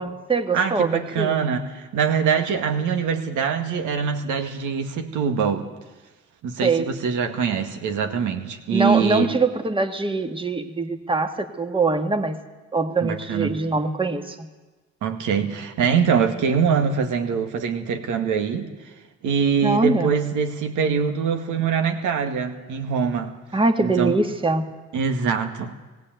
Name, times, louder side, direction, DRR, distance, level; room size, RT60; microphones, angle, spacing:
voice 1, 0.0-1.4 6.6-6.9 8.7-12.4 12.7-14.5 19.6-20.1 23.5-24.7, right 3 dB, 15° right, 6 dB, 1.7 m, -23 dB
voice 2, 0.5-5.7 6.4-9.3 13.0-13.6 15.0-18.7 19.2-23.4 23.8-24.2 24.9-25.7, right 6 dB, 80° right, 6 dB, 2.1 m, -23 dB
18.5 x 17.0 x 9.1 m, 1.2 s
cardioid pair, 90°, 30 cm